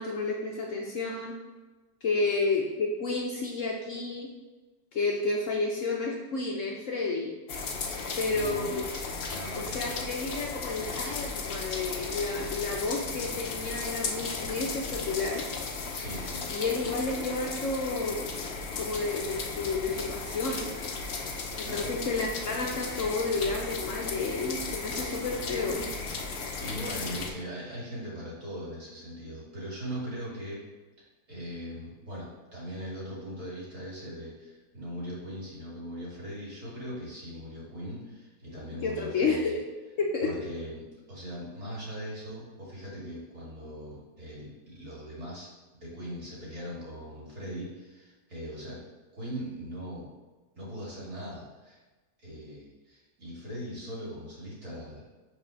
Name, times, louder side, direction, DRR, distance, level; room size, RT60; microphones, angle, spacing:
voice 1, 0.0-1.3 2.0-4.3 4.9-7.3 8.2-8.8 9.5-15.4 16.5-18.2 18.8-20.7 21.6-25.9 38.8-39.6 40.0-40.3, left 3 dB, 60° left, -1 dB, 0.8 m, -31 dB
sound 1, 7.5-27.3, left 4 dB, 85° left, 0.5 m, -35 dB
voice 2, 7.7-9.0 9.3-10.0 15.9-16.5 21.6-21.9 26.1-30.6 31.3-39.6 40.2-45.5 45.8-48.8 49.1-50.1 50.5-51.8 52.2-55.0, equal, 45° right, -6 dB, 2.6 m, -40 dB
5.6 x 4.2 x 5.1 m, 1.2 s
omnidirectional pair, 2.0 m